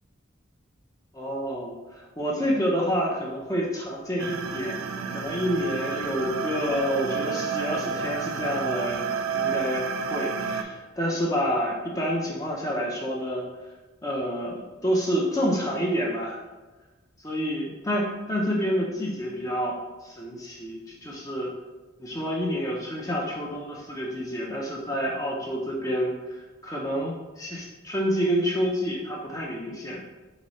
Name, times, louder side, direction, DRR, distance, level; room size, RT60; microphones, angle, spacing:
voice 1, 1.1-4.8 5.1-9.1 9.3-9.8 10.1-13.4 14.0-16.4 17.2-21.5 22.0-30.0, equal, 15° left, -3 dB, 0.5 m, -28 dB
sound 1, 4.2-10.6, right 6 dB, 85° right, 0.4 m, -30 dB
4.0 x 3.6 x 3.1 m, 1.2 s
head